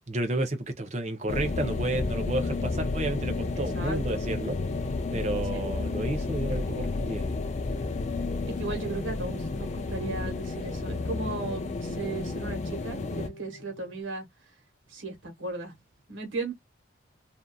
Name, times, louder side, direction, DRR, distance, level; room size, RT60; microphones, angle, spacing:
voice 1, 0.1-4.6 5.1-7.3, right 1 dB, 35° right, 0.6 m, -31 dB
sound 1, 1.3-13.3, left 3 dB, 35° left, 0.3 m, -31 dB
voice 2, 3.6-4.2 5.5-5.6 8.4-14.3 14.9-15.7 16.1-16.5, right 3 dB, 85° right, 1.3 m, -36 dB
sound 2, 9.0-14.0, equal, 80° left, 0.8 m, -50 dB
2.6 x 2.4 x 2.2 m
head